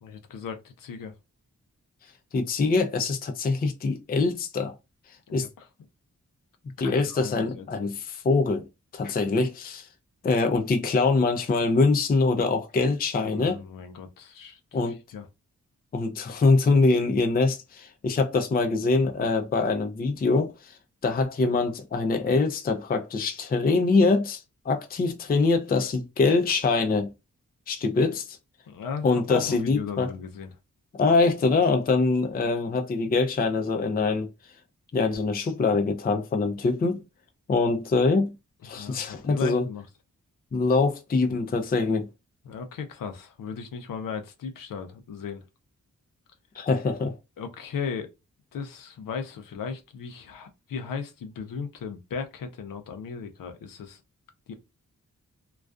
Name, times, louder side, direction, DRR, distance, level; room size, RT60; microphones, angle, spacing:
voice 1, 0.0-1.1 5.3-5.7 6.8-7.9 13.2-14.6 15.1-15.3 28.7-30.5 38.8-39.8 42.5-45.4 47.4-48.1 48.5-54.0 54.5-54.6, left 6 dB, 90° left, 0.5 m, -36 dB
voice 2, 2.3-4.7 5.3-5.5 6.8-8.7 8.9-9.9 10.2-13.6 14.7-15.0 15.9-20.8 21.0-27.1 27.7-28.4 29.0-30.1 31.0-34.3 34.9-37.0 37.5-38.3 38.6-39.7 40.5-42.1 46.6-47.2, left 3 dB, 30° left, 0.4 m, -24 dB
2.3 x 2.2 x 2.3 m
cardioid pair, 50°, 32 cm